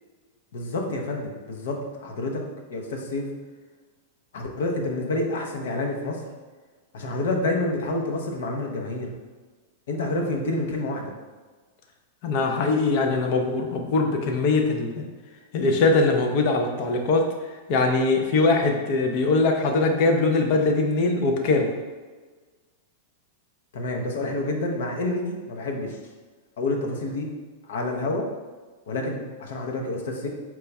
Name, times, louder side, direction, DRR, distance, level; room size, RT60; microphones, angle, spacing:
voice 1, 0.5-3.3 4.3-6.2 6.9-9.1 9.9-11.1 23.7-26.0 26.6-27.3 27.7-28.3 28.9-30.3, left 2 dB, 75° left, 1 dB, 0.7 m, -28 dB
voice 2, 12.2-15.0 15.5-17.2 17.7-21.7, left 3 dB, 40° left, 3 dB, 0.5 m, -22 dB
4.5 x 2.3 x 4.0 m, 1.4 s
supercardioid pair, 160°, 0 cm